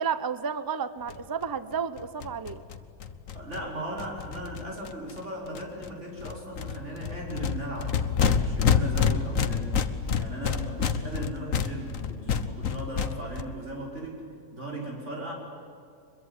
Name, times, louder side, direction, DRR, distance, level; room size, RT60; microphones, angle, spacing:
voice 1, 0.0-2.6, right 6 dB, 20° right, 14 dB, 0.6 m, -31 dB
sound 1, 1.1-1.2 1.4-1.5 1.7-1.8 2.0-5.2 5.5-5.9 6.2-13.4, left 7 dB, 55° left, 1.4 m, -28 dB
voice 2, 3.3-9.8 10.1-14.2 14.5-15.3, right 1 dB, 45° right, -1 dB, 6.1 m, -37 dB
24.5 x 22.0 x 9.9 m, 2.5 s
omnidirectional pair, 1.7 m